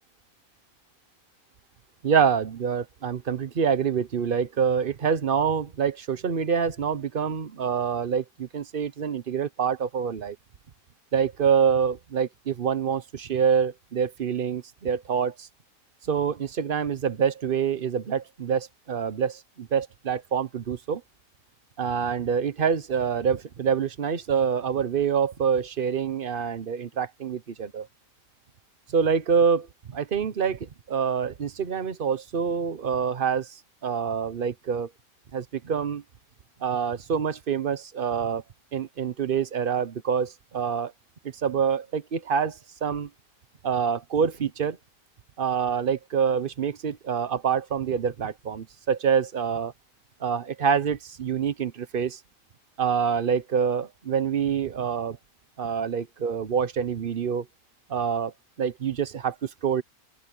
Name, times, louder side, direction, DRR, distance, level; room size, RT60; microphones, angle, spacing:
voice 1, 2.0-10.4 11.1-15.5 16.1-21.0 21.8-27.9 28.9-30.6 30.9-34.9 35.3-36.0 36.6-38.4 38.7-40.9 41.4-43.1 43.6-44.8 45.4-49.7 50.2-52.2 52.8-55.2 55.6-57.4 57.9-58.3 58.6-59.8, right 7 dB, 40° right, 1.0 m, -26 dB
open air
omnidirectional pair, 1.5 m